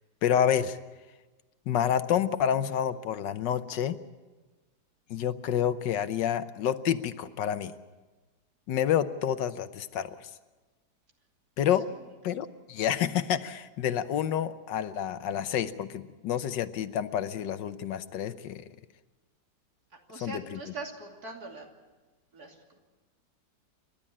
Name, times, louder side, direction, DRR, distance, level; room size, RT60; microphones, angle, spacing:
voice 1, 0.2-0.8 1.7-4.0 5.1-7.7 8.7-10.3 11.6-11.9 12.2-18.6 20.2-20.6, left 9 dB, 80° left, 12 dB, 1.5 m, -28 dB
voice 2, 19.9-21.7 22.3-22.8, right 3 dB, 60° right, 2 dB, 3.2 m, -42 dB
29.5 x 12.5 x 8.6 m, 1.2 s
omnidirectional pair, 1.9 m